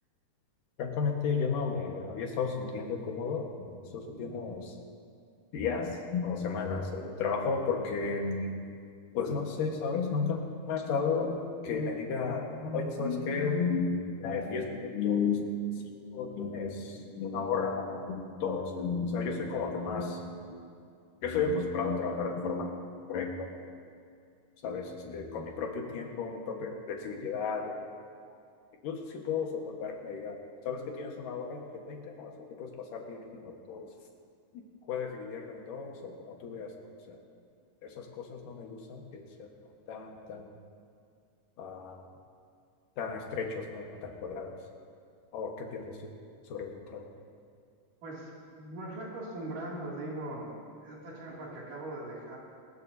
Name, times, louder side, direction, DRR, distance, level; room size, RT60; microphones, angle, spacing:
voice 1, 0.8-4.7 5.5-8.5 9.1-10.4 10.7-20.2 20.5-20.6 21.2-22.8 23.1-23.5 24.6-27.8 28.8-30.4 30.6-33.9 34.9-36.8 37.1-37.2 37.8-40.5 41.6-42.0 43.0-44.6 45.3-46.1 46.5-47.1, left 5 dB, 85° left, 1 dB, 3.1 m, -33 dB
voice 2, 48.6-52.4, right 1 dB, 75° right, -5 dB, 4.3 m, -40 dB
21.0 x 20.0 x 2.8 m, 2.3 s
omnidirectional pair, 3.7 m